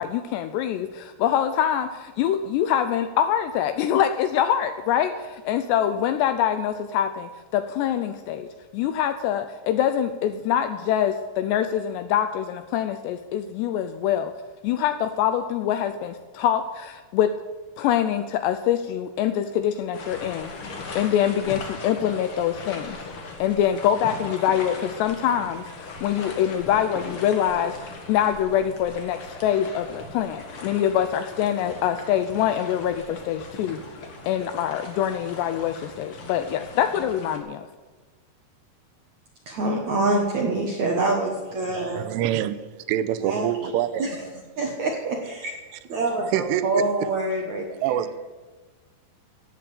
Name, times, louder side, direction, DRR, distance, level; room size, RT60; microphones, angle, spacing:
voice 1, 0.0-14.3 14.6-17.3 17.8-20.5 21.0-23.0 23.4-33.8 34.3-37.7, left 10 dB, 80° left, 10 dB, 2.5 m, -24 dB
sound 1, 19.9-37.4, left 3 dB, 60° left, 1.4 m, -39 dB
voice 2, 39.5-42.1 43.2-43.5 44.0-44.3 44.6-45.5 45.9-48.1, right 2 dB, 70° right, 0 dB, 1.8 m, -26 dB
voice 3, 42.0-42.6 42.9-44.0 46.3-46.8 47.8-48.2, right 11 dB, 85° right, 12 dB, 3.2 m, -25 dB
16.5 x 7.7 x 8.5 m, 1.3 s
omnidirectional pair, 5.5 m